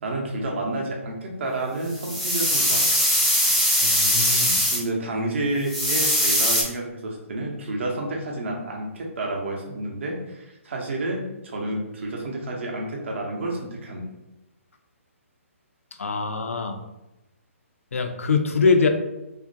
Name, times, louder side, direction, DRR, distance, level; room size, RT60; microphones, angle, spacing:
voice 1, 0.0-3.0 4.7-14.0, right 2 dB, 55° right, -1 dB, 0.7 m, -30 dB
sound 1, 1.9-4.8 5.7-6.6, equal, ahead, 0.3 m, -21 dB
voice 2, 3.8-4.6 16.0-16.8 17.9-18.9, left 4 dB, 75° left, 6 dB, 0.3 m, -23 dB
2.5 x 2.1 x 2.5 m, 0.95 s
figure-of-eight pair, 135°, 8 cm